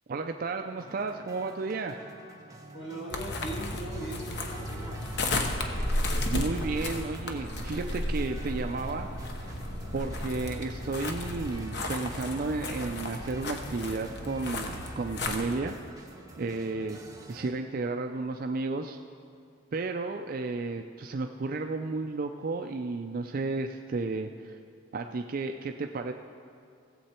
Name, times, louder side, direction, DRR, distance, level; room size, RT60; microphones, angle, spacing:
voice 1, 0.1-2.0 6.3-9.1 9.9-15.8 16.4-17.0 17.3-19.0 19.7-24.6 24.9-26.1, right 3 dB, 45° right, 5 dB, 0.4 m, -33 dB
sound 1, 0.8-17.5, right 1 dB, 15° right, 1.0 m, -48 dB
voice 2, 2.7-5.1, right 1 dB, 80° left, -1 dB, 2.1 m, -39 dB
sound 2, 3.1-15.6, left 1 dB, 60° left, 1.0 m, -33 dB
17.5 x 7.7 x 4.3 m, 2.3 s
head